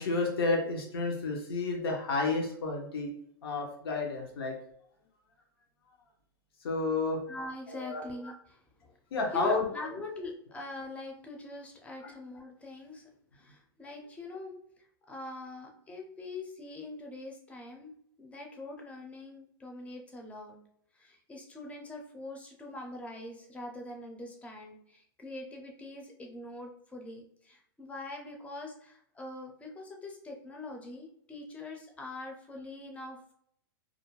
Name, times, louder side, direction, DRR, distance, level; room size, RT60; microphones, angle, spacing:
voice 1, 0.0-3.1 3.4-4.6 6.6-7.2 7.7-8.0 9.1-9.7 12.0-12.1, left 3 dB, 85° left, 0 dB, 0.7 m, -31 dB
voice 2, 7.3-9.0 9.3-17.9 18.2-20.6 20.9-33.3, left 2 dB, 10° left, 2 dB, 0.5 m, -43 dB
2.4 x 2.1 x 3.0 m, 0.68 s
hypercardioid pair, 130°, 12 cm